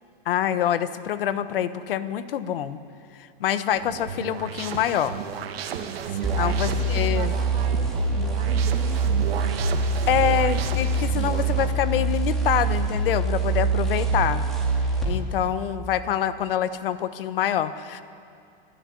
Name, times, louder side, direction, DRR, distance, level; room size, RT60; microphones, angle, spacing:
voice 1, 0.3-2.8 3.4-5.2 6.4-7.3 10.1-14.4 15.0-18.0, left 10 dB, 65° left, 13 dB, 1.2 m, -25 dB
sound 1, 3.7-11.7, right 7 dB, 85° right, 1.9 m, -34 dB
voice 2, 4.6-4.9 5.7-9.4, right 6 dB, 20° right, 1 dB, 1.3 m, -39 dB
sound 2, 6.2-15.1, right 3 dB, ahead, 2.3 m, -24 dB
24.0 x 12.5 x 9.7 m, 2.4 s
supercardioid pair, 175°, 29 cm